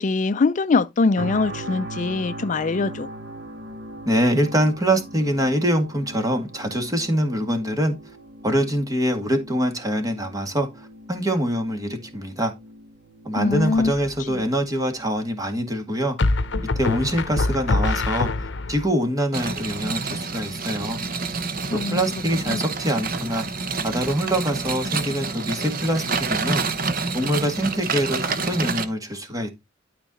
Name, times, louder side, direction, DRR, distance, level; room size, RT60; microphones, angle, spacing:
voice 1, 0.0-3.1 13.4-13.9 14.3-14.4 21.7-22.0 22.5-22.6, left 4 dB, 40° left, 0.4 m, -22 dB
sound 1, 1.2-16.2 16.7-16.8, right 1 dB, 70° right, 2.3 m, -40 dB
voice 2, 4.1-8.0 8.4-12.5 13.2-16.2 16.8-18.3 18.7-21.0 21.7-23.4 23.8-26.6 27.1-29.5, equal, 20° right, 2.0 m, -24 dB
sound 2, 13.5-14.0 16.2-18.9, left 3 dB, 65° left, 0.8 m, -24 dB
sound 3, 19.3-28.8, right 4 dB, 50° right, 1.1 m, -28 dB
12.5 x 4.7 x 4.1 m
head